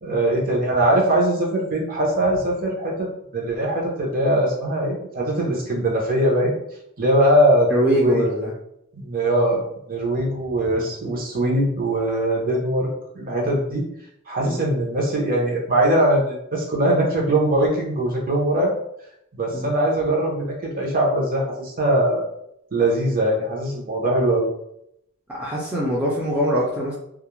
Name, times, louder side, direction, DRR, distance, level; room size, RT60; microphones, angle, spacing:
voice 1, 0.0-3.1 3.3-6.5 7.0-8.2 8.9-9.6 9.9-12.9 13.1-13.8 14.3-18.7 19.3-22.3 22.7-24.5, right 1 dB, 45° right, -2 dB, 0.7 m, -21 dB
voice 2, 7.7-8.5 14.4-14.6 19.5-19.7 25.3-26.9, equal, 5° right, -7 dB, 0.4 m, -22 dB
2.4 x 2.1 x 3.0 m, 0.76 s
head